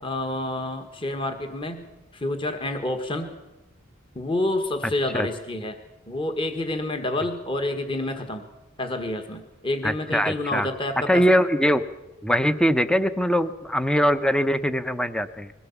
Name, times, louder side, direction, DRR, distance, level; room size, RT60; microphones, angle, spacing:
voice 1, 0.0-1.9 2.1-3.3 4.1-5.8 6.1-8.5 8.8-11.4, left 2 dB, 25° left, 6 dB, 1.5 m, -28 dB
voice 2, 9.8-10.7 11.1-11.8 12.2-15.5, equal, 5° left, 11 dB, 0.7 m, -22 dB
21.5 x 17.0 x 7.2 m, 1.0 s
head